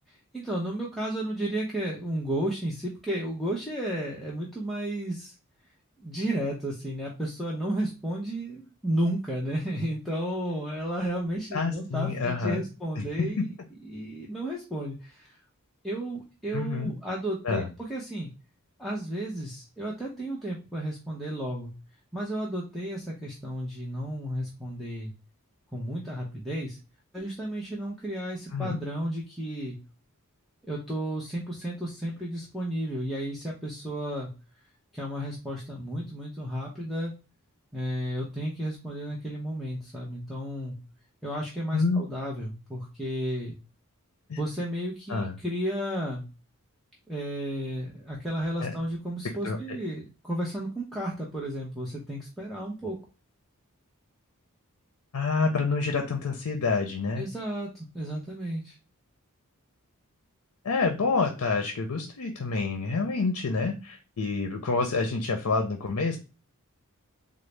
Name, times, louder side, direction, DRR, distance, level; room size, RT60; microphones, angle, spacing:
voice 1, 0.1-5.3 6.0-13.5 13.8-15.3 15.8-18.3 18.8-21.7 22.1-25.1 25.7-26.8 27.1-29.8 30.6-34.3 34.9-37.1 37.7-40.8 41.2-43.6 44.4-46.2 47.1-53.0 57.2-58.8, right 1 dB, ahead, -5 dB, 0.6 m, -33 dB
voice 2, 11.5-12.6 13.0-13.1 16.5-16.9 17.4-17.7 28.5-28.8 41.7-42.0 44.3-44.4 45.1-45.4 48.6-48.7 49.4-49.8 55.1-57.2 60.6-66.2, left 4 dB, 75° left, 4 dB, 0.5 m, -28 dB
3.9 x 2.0 x 3.1 m, 0.31 s
head